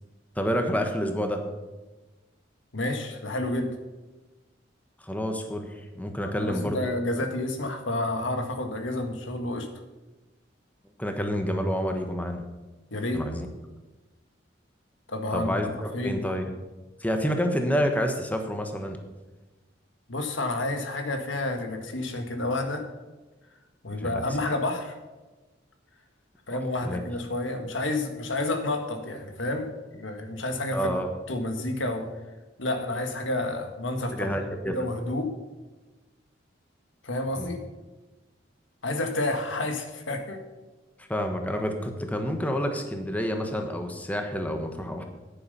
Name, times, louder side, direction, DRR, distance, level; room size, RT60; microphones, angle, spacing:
voice 1, 0.4-1.4 5.0-5.7 5.9-6.8 7.2-7.3 11.0-12.4 13.1-13.5 15.3-16.5 17.0-19.0 24.0-24.2 26.5-27.0 30.7-31.1 34.1-34.8 37.4-37.6 41.1-45.0, equal, 10° left, 5 dB, 1.1 m, -28 dB
voice 2, 2.7-3.7 6.2-9.7 12.9-13.2 15.1-15.5 15.9-16.2 20.1-22.8 23.8-24.9 26.5-31.0 31.3-32.1 32.6-34.3 34.7-35.3 37.0-37.6 38.8-40.4, left 2 dB, 85° left, 5 dB, 1.7 m, -30 dB
10.5 x 10.0 x 5.5 m, 1.2 s
head